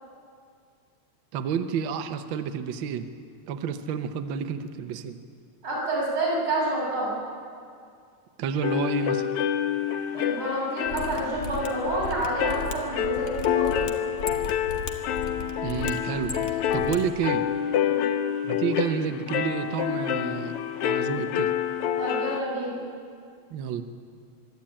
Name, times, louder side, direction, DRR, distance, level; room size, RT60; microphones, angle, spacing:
voice 1, 1.3-3.1 3.5-5.2 8.4-9.3 15.6-16.3 16.7-17.5 18.4-20.5 20.8-21.5 23.5-23.8, right 7 dB, 90° right, 9 dB, 1.0 m, -29 dB
voice 2, 5.6-7.2 10.1-13.9 17.7-18.0 22.0-22.7, right 1 dB, 40° right, -5 dB, 7.4 m, -28 dB
sound 1, 8.6-22.4, left 10 dB, 70° left, 1.5 m, -28 dB
Mechanisms, 10.8-17.0 17.2-17.3, left 3 dB, 50° left, 0.9 m, -36 dB
25.0 x 12.0 x 8.7 m, 2.2 s
omnidirectional pair, 3.5 m